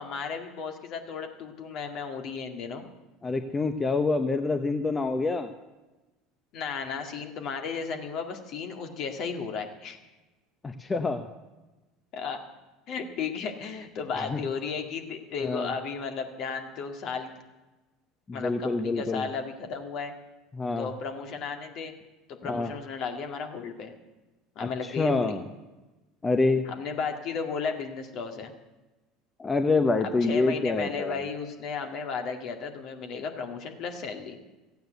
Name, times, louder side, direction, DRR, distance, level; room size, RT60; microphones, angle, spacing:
voice 1, 0.0-2.9 6.5-10.0 12.1-12.4 12.9-17.3 18.3-20.1 20.8-21.9 22.3-23.9 24.6-25.4 26.7-28.5 30.2-34.4, left 5 dB, 55° left, 5 dB, 2.0 m, -34 dB
voice 2, 3.2-5.5 10.6-11.3 14.3-14.4 15.4-15.7 18.3-19.3 20.5-20.9 22.4-22.7 24.6-25.4 26.2-26.6 29.4-31.2, left 3 dB, 20° left, 8 dB, 0.9 m, -26 dB
14.5 x 9.2 x 8.0 m, 1.1 s
hypercardioid pair, 85°, 0 cm